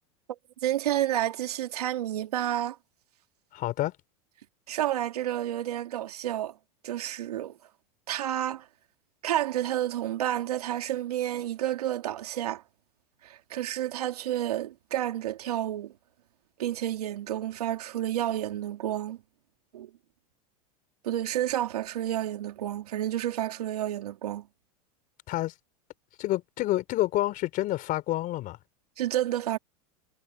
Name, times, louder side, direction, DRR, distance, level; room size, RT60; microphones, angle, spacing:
voice 1, 0.3-2.8 4.7-6.5 6.8-7.6 8.1-8.6 9.2-12.6 13.2-15.9 16.6-19.2 19.7-19.9 21.0-24.4 29.0-29.6, right 12 dB, 85° right, 3.2 m, -30 dB
voice 2, 3.5-3.9 25.3-25.5 26.2-28.6, left 16 dB, 45° left, 4.4 m, -28 dB
hypercardioid pair, 115°, 19 cm